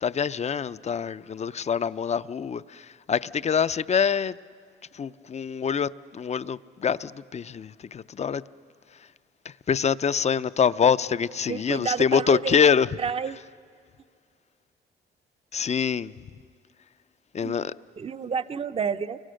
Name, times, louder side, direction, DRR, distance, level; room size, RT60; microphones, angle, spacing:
voice 1, 0.0-4.4 4.9-8.4 9.7-12.9 15.5-16.1 17.3-17.7, left 7 dB, 35° left, 0.5 m, -25 dB
voice 2, 11.5-12.6 13.0-13.4 17.4-17.5 18.0-19.2, right 6 dB, 30° right, 0.6 m, -30 dB
29.5 x 23.0 x 6.4 m
cardioid pair, 90°, 20 cm